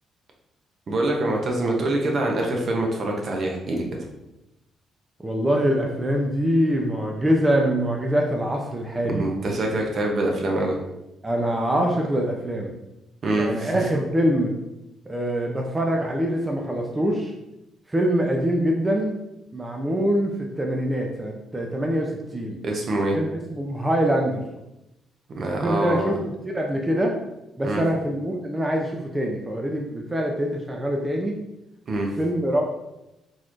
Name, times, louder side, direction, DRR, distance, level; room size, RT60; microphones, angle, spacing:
voice 1, 0.9-3.8 9.1-10.8 13.2-14.0 22.6-23.2 25.3-26.1 27.6-27.8 31.9-32.1, right 2 dB, 50° right, 1 dB, 0.8 m, -25 dB
voice 2, 5.2-9.2 11.2-12.7 13.4-14.5 15.1-17.3 17.9-19.1 19.5-22.6 23.2-24.4 25.6-26.2 26.4-27.1 27.6-31.3 32.2-32.6, equal, 15° right, 0 dB, 0.5 m, -24 dB
3.9 x 3.1 x 2.5 m, 0.92 s
cardioid pair, 90°, 0 cm